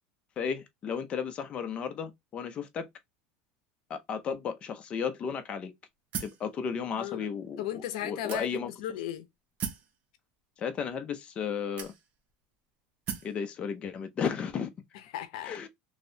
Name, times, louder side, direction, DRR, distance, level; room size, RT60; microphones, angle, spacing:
voice 1, 0.4-2.9 3.9-5.7 6.2-8.7 10.6-11.9 13.2-14.7 15.4-15.7, left 6 dB, 30° left, 0.5 m, -34 dB
sound 1, 6.1-6.5 7.2-7.3 8.3-8.8 9.6-9.9 10.9-11.0 11.8-12.3 13.1-13.4, right 7 dB, 40° right, 0.8 m, -37 dB
voice 2, 6.9-7.3 7.6-9.3 14.9-15.6, left 11 dB, 80° left, 0.6 m, -36 dB
3.0 x 2.7 x 2.6 m
supercardioid pair, 135°, 4 cm